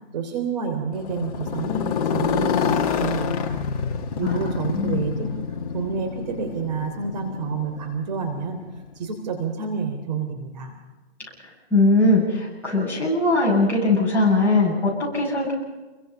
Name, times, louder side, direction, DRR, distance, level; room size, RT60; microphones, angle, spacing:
voice 1, 0.1-3.6 4.2-5.4 5.7-8.6 8.9-10.7, right 5 dB, 40° right, 4 dB, 3.4 m, -29 dB
Motorcycle, 0.9-9.0, left 6 dB, 35° left, 1.8 m, -27 dB
voice 2, 4.7-5.0 11.4-15.5, left 2 dB, 5° left, -6 dB, 7.9 m, -20 dB
29.0 x 23.5 x 5.7 m, 1.2 s
hypercardioid pair, 150°, 34 cm